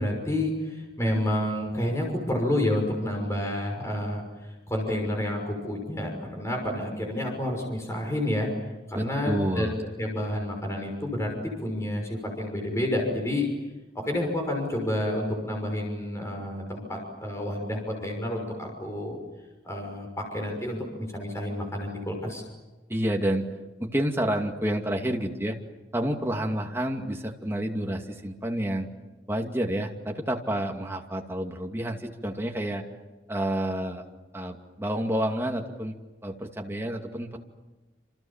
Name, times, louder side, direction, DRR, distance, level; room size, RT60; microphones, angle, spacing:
voice 1, 0.0-8.5 8.9-9.7 10.0-13.5 13.9-19.2 19.6-22.4, left 1 dB, 15° left, 1 dB, 6.0 m, -29 dB
voice 2, 8.9-9.7 22.9-23.5 23.8-25.6 25.9-28.9 29.3-32.8 33.3-34.0 34.3-35.9 36.2-37.4, right 1 dB, 15° right, 2 dB, 2.5 m, -29 dB
28.0 x 27.5 x 7.4 m, 1.1 s
head